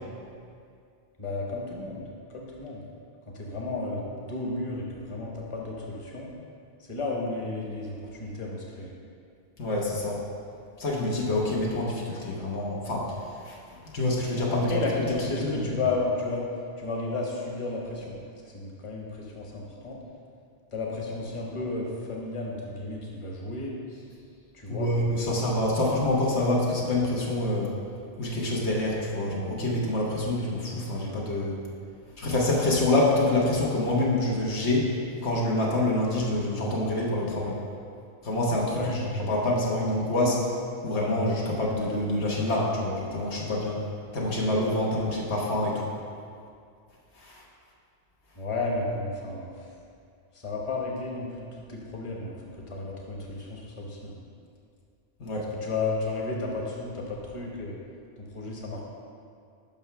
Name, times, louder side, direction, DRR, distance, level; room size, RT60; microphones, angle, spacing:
voice 1, 1.2-2.8 3.3-6.3 6.8-8.9 14.5-16.5 16.8-18.2 18.4-20.0 20.7-23.8 24.5-25.4 38.7-38.9 48.3-49.7 50.3-54.2 55.6-57.8 58.3-58.8, left 3 dB, 30° left, -2 dB, 1.0 m, -33 dB
voice 2, 9.6-10.2 10.8-14.8 15.4-15.7 24.7-27.7 28.2-31.6 32.2-34.9 35.2-37.6 38.2-40.5 40.8-43.8 44.1-45.9 47.2-47.4 55.2-55.5, left 1 dB, 80° left, -3 dB, 1.4 m, -26 dB
5.7 x 5.6 x 5.6 m, 2.3 s
omnidirectional pair, 1.1 m